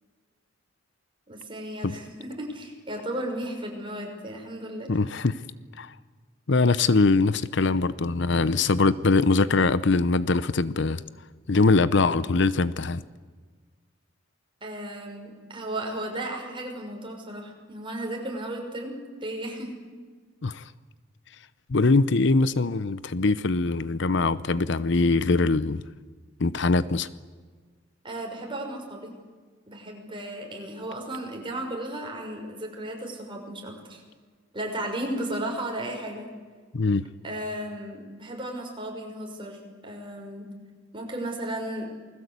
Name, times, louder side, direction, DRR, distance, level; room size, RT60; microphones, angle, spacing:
voice 1, 1.3-4.9 14.6-19.7 28.0-29.1 29.7-34.0 34.5-36.3 37.2-40.5 40.9-41.9, right 1 dB, 25° right, 1 dB, 6.0 m, -34 dB
voice 2, 4.9-5.4 5.8-5.9 6.5-11.0 11.5-13.0 20.4-20.6 21.7-25.9 26.4-27.1 36.7-37.0, left 3 dB, 65° left, 15 dB, 0.8 m, -22 dB
28.5 x 20.5 x 8.3 m, 1.5 s
head